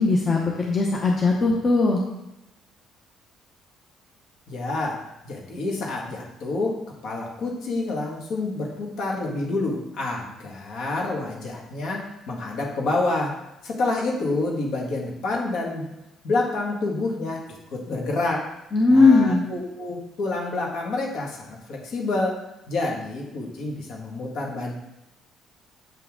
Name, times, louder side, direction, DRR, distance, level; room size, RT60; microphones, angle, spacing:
voice 1, 0.0-2.0 18.7-19.4, left 3 dB, 25° left, -1 dB, 0.8 m, -18 dB
voice 2, 4.5-6.8 7.0-13.4 13.6-15.9 16.2-17.4 17.7-18.5 18.9-22.4 22.7-24.7, left 2 dB, 60° left, -1 dB, 1.8 m, -28 dB
7.9 x 5.7 x 3.7 m, 0.93 s
cardioid pair, 165°, 0 cm